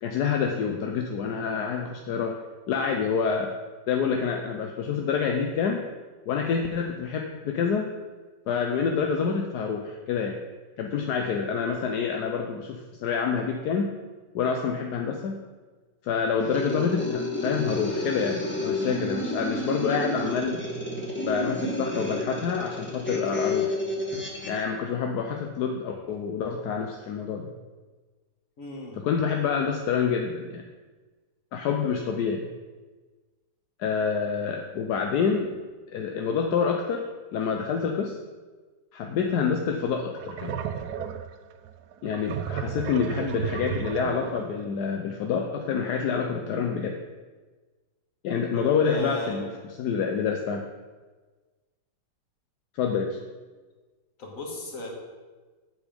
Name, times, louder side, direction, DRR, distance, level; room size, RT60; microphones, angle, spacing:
voice 1, 0.0-2.4 2.7-3.5 3.9-5.8 6.3-7.9 8.5-10.4 10.8-13.9 14.3-15.4 16.0-20.6 21.2-23.8 24.4-27.5 29.0-30.6 31.5-32.5 33.8-35.5 35.9-38.2 38.9-40.6 42.0-47.0 48.2-49.5 49.8-50.6 52.8-53.2, left 6 dB, 70° left, 3 dB, 1.1 m, -27 dB
sound 1, 16.4-24.6, left 2 dB, 5° left, 1.1 m, -30 dB
voice 2, 28.6-29.0 48.6-49.4 54.2-54.9, left 2 dB, 45° left, 0 dB, 1.9 m, -36 dB
sound 2, 39.2-39.4 39.8-44.6, right 8 dB, 70° right, 1.0 m, -33 dB
8.0 x 7.2 x 5.2 m, 1.3 s
omnidirectional pair, 2.1 m